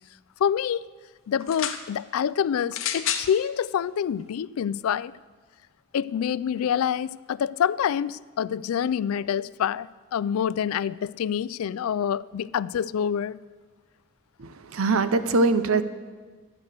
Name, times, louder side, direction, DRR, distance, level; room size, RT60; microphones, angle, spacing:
voice 1, 0.4-0.9 1.3-5.1 5.9-13.4, left 8 dB, 90° left, 0.3 m, -26 dB
sound 1, 1.4-1.8 2.7-3.3 4.2-4.3, left 9 dB, 70° left, 0.8 m, -29 dB
voice 2, 14.4-15.8, right 3 dB, 90° right, 0.7 m, -22 dB
12.0 x 9.4 x 6.5 m
head